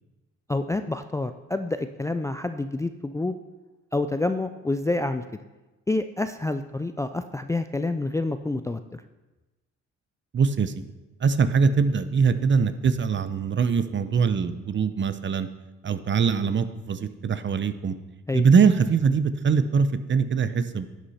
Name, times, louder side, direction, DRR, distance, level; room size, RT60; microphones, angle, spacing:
voice 1, 0.5-3.4 3.9-5.2 5.9-9.0 18.3-18.4, left 2 dB, 10° left, 9 dB, 0.4 m, -28 dB
voice 2, 10.3-10.9 11.2-15.5 15.8-17.9 18.3-20.9, right 5 dB, 40° right, 11 dB, 0.8 m, -22 dB
11.5 x 8.3 x 4.2 m, 1.1 s
cardioid pair, 90°, 30 cm